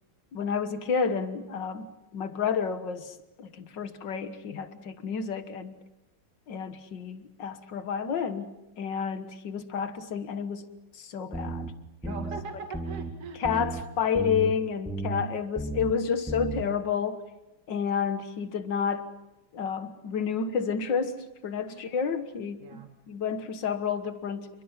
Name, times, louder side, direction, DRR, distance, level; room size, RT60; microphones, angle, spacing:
voice 1, 0.3-5.7 6.5-8.5 8.8-10.7 10.9-11.7 12.0-12.3 13.4-17.2 17.7-19.1 19.5-21.2 21.4-24.5, left 6 dB, 60° left, 10 dB, 2.0 m, -30 dB
sound 1, 11.3-11.7 12.0-12.4 12.7-13.1 13.4-13.8 14.1-14.5 14.9-15.2 15.6-15.9 16.3-16.6, right 3 dB, ahead, 1.8 m, -33 dB
voice 2, 12.1-13.7 15.1-15.3 21.7-21.8 22.6-22.9, right 4 dB, 40° right, 4 dB, 2.4 m, -41 dB
28.0 x 23.5 x 5.7 m, 0.98 s
omnidirectional pair, 2.4 m